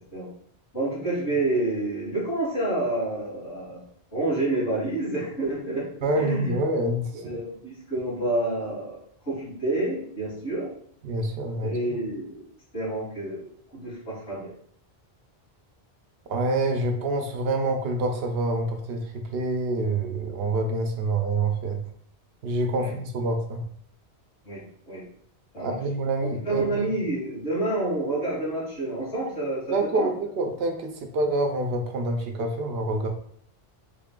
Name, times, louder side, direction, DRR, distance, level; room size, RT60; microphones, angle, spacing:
voice 1, 0.7-3.8 4.1-5.9 6.2-6.6 7.1-9.0 9.3-10.7 11.6-12.4 12.7-13.5 13.7-14.5 22.8-22.9 24.5-25.0 25.5-25.8 26.2-30.1, right 2 dB, 80° left, -10 dB, 1.8 m, -28 dB
voice 2, 6.0-7.4 11.0-12.0 16.3-21.8 22.4-23.7 25.6-27.0 29.7-33.1, right 2 dB, 70° right, 5 dB, 0.8 m, -27 dB
3.6 x 2.4 x 3.6 m, 0.62 s
omnidirectional pair, 1.1 m